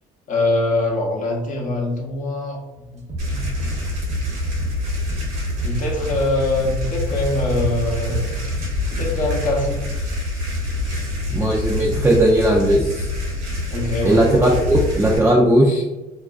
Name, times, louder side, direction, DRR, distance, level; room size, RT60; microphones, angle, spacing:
voice 1, 0.3-2.6 2.9-3.4 5.6-8.4 8.9-9.8 11.7-11.8 13.7-14.6, left 2 dB, 50° left, 0 dB, 0.7 m, -23 dB
sound 1, 3.0-9.3, right 2 dB, 45° right, 0.8 m, -34 dB
sound 2, 3.2-15.2, left 1 dB, 80° right, 1.0 m, -26 dB
voice 2, 11.3-13.1 14.0-15.8, right 1 dB, 15° right, -3 dB, 0.4 m, -17 dB
2.4 x 2.2 x 2.3 m, 1.1 s
supercardioid pair, 75°, 17 cm